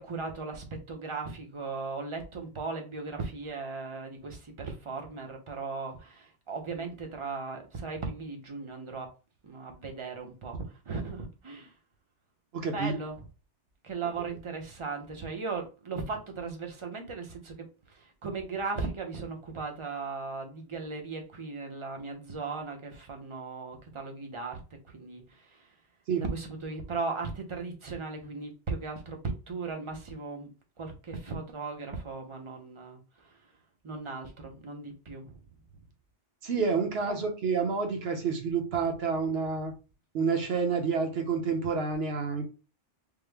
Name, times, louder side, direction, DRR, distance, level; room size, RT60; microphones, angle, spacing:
voice 1, 0.0-9.1 9.4-11.7 12.7-13.3 13.8-24.6 24.9-25.7 26.2-33.5 33.8-35.4 37.1-37.2, right 4 dB, 35° right, 0.6 m, -37 dB
voice 2, 12.5-12.9 26.1-26.2 36.4-39.7 40.1-42.5, right 5 dB, 60° right, 1.0 m, -29 dB
3.6 x 2.0 x 3.3 m
omnidirectional pair, 1.2 m